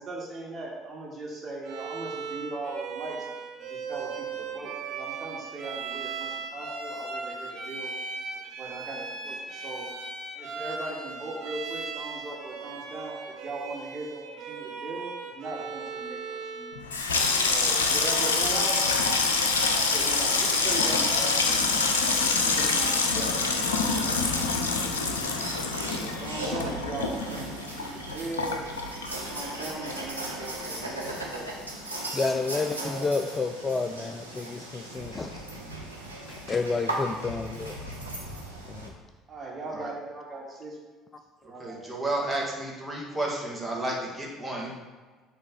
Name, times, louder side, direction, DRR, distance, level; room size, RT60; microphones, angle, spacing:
voice 1, 0.0-3.3 3.6-7.9 8.3-9.9 10.3-17.0 17.5-18.8 19.7-21.6 22.1-23.4 23.8-25.2 25.9-28.6 29.3-31.7 32.1-32.4 32.7-33.4 33.7-34.0 34.3-34.4 37.4-37.7 39.3-41.1 41.4-41.9, right 2 dB, 30° right, -3 dB, 2.0 m, -39 dB
Bowed string instrument, 1.6-16.9, right 4 dB, 55° right, 0.9 m, -38 dB
Water tap faucet / Sink (filling or washing), 16.7-29.6 29.9-30.6 30.8-31.1, left 4 dB, 75° left, 0.6 m, -26 dB
sound 1, 23.6-38.9, right 1 dB, 90° right, 0.8 m, -38 dB
voice 2, 32.1-35.4 36.5-37.7 38.7-38.9, left 4 dB, 25° left, 7 dB, 0.4 m, -30 dB
voice 3, 41.6-44.7, right 1 dB, 10° right, -3 dB, 1.9 m, -32 dB
7.1 x 3.2 x 5.9 m, 1.4 s
figure-of-eight pair, 60°, 0 cm